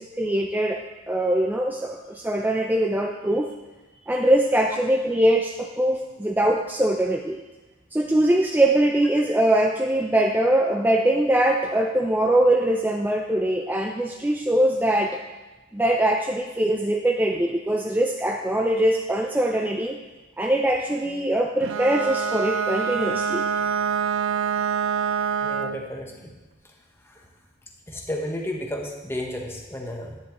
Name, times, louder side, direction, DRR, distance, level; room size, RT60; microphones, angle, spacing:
voice 1, 0.0-3.5 4.1-7.4 7.9-15.1 15.7-20.0 20.4-23.6, right 1 dB, 10° right, 1 dB, 0.4 m, -22 dB
Bowed string instrument, 21.6-25.9, right 6 dB, 90° right, 0.5 m, -26 dB
voice 2, 25.4-26.4 27.0-27.2 27.9-30.2, left 1 dB, 10° left, 1 dB, 1.0 m, -32 dB
10.0 x 10.0 x 3.0 m, 1.1 s
head